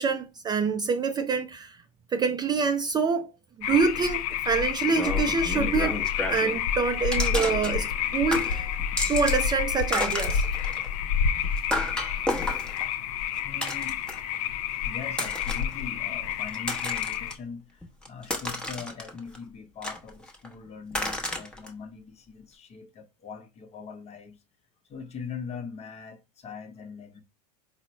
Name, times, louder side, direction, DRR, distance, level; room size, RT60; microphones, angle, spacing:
voice 1, 0.0-1.8 2.1-3.3 3.6-6.0 6.3-8.8 9.1-10.5, right 5 dB, 20° right, 0.3 m, -26 dB
sound 1, 3.6-17.3, left 8 dB, 65° left, 0.5 m, -29 dB
sound 2, 4.9-6.6 7.1-8.1 8.3-9.5 9.8-14.4 15.1-15.7 16.3-17.3 17.8-19.4 19.8-20.5 20.9-21.7, left 1 dB, 5° left, 0.8 m, -32 dB
voice 2, 13.4-14.0 14.8-24.4 24.8-27.2, left 6 dB, 30° left, 0.8 m, -41 dB
4.1 x 2.0 x 4.1 m
hypercardioid pair, 95°, 21 cm